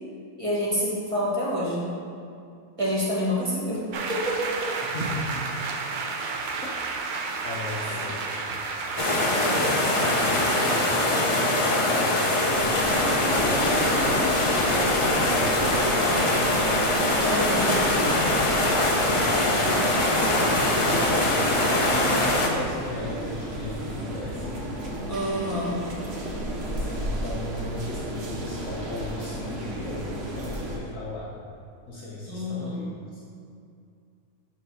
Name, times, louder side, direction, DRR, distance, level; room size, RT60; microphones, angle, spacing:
voice 1, 0.4-1.9 2.8-3.8 4.1-4.7 7.8-8.0 17.2-17.7 25.1-25.8 32.3-32.8, equal, 25° right, -6 dB, 1.4 m, -27 dB
sound 1, 3.9-10.9, right 4 dB, 80° right, 0.4 m, -31 dB
voice 2, 4.8-5.6 7.4-8.6 9.3-12.7 13.2-16.6 17.6-20.1 20.3-24.6 26.7-31.3 31.9-33.2, left 2 dB, 65° left, -5 dB, 1.2 m, -36 dB
sound 2, 9.0-22.5, left 1 dB, 40° left, 0.4 m, -23 dB
sound 3, 12.5-30.8, right 1 dB, 50° right, 1.0 m, -33 dB
7.4 x 3.1 x 5.5 m, 2.4 s
omnidirectional pair, 1.5 m